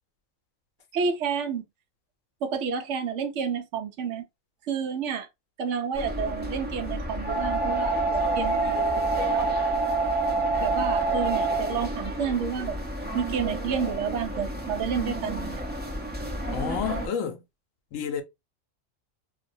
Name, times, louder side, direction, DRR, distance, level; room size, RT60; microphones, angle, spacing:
voice 1, 0.9-1.6 2.4-4.2 4.6-5.3 5.6-9.5 10.6-12.8 13.1-15.6, right 6 dB, 75° right, 0.9 m, -30 dB
sound 1, 5.9-17.1, right 2 dB, 15° right, 0.3 m, -28 dB
voice 2, 16.5-17.4 17.9-18.2, left 7 dB, 85° left, 1.0 m, -30 dB
2.6 x 2.1 x 2.6 m
omnidirectional pair, 1.3 m